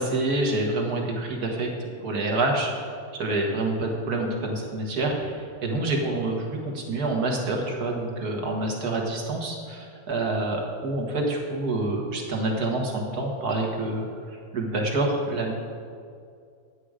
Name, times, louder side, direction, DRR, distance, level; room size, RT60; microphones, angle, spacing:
voice 1, 0.0-2.7 3.1-15.5, right 2 dB, 65° right, 1 dB, 2.0 m, -27 dB
9.4 x 8.9 x 5.0 m, 2.3 s
omnidirectional pair, 1.8 m